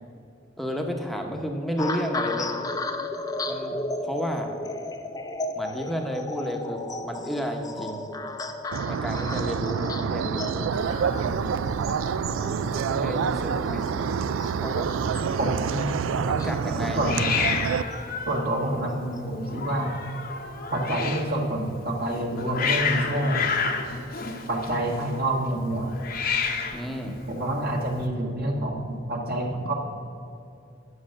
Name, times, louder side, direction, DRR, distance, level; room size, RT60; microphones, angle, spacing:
voice 1, 0.6-2.5 3.5-4.5 5.5-8.1 8.9-10.7 11.2-11.6 12.9-13.8 14.6-14.9 16.1-17.3 26.7-27.2, equal, ahead, 3 dB, 0.9 m, -32 dB
sound 1, 1.8-18.2 18.9-19.2, left 2 dB, 20° left, 0.5 m, -35 dB
sound 2, 8.7-17.8, right 6 dB, 85° right, 0.3 m, -27 dB
Hiss, 10.7-28.1, left 5 dB, 45° left, 0.9 m, -32 dB
voice 2, 15.4-15.8 17.0-17.3 18.3-20.0 20.7-23.5 24.5-26.0 27.3-29.7, right 1 dB, 50° right, 0 dB, 1.6 m, -27 dB
9.7 x 7.0 x 6.3 m, 2.6 s
head